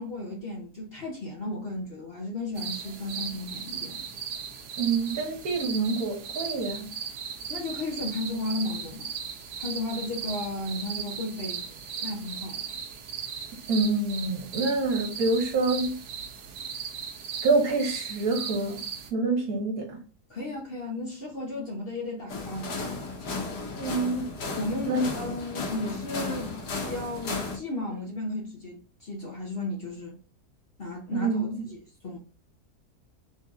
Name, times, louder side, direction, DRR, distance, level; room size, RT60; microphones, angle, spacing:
voice 1, 0.0-4.1 7.5-9.1 9.6-11.6 12.0-12.7 20.3-22.9 24.6-26.5 26.9-30.2 30.8-31.8 32.0-32.2, left 2 dB, 45° left, 0.9 m, -34 dB
sound 1, 2.5-19.1, right 7 dB, 80° right, 1.3 m, -37 dB
voice 2, 4.8-6.9 13.7-15.9 17.4-18.8 19.1-20.0 23.7-24.3 24.9-25.2 31.1-31.6, right 3 dB, 65° right, 1.6 m, -26 dB
sound 2, 22.3-27.6, left 3 dB, 85° left, 1.6 m, -34 dB
3.8 x 2.8 x 3.5 m
omnidirectional pair, 1.7 m